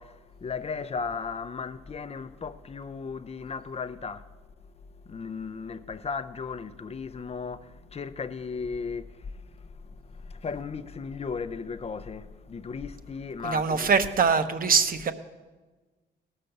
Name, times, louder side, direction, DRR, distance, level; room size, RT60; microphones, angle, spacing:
voice 1, 0.0-4.3 4.9-13.9, left 5 dB, 30° left, 0.6 m, -36 dB
voice 2, 13.4-15.1, right 5 dB, 45° right, 1.0 m, -23 dB
18.0 x 6.5 x 6.7 m
cardioid pair, 90°, 20 cm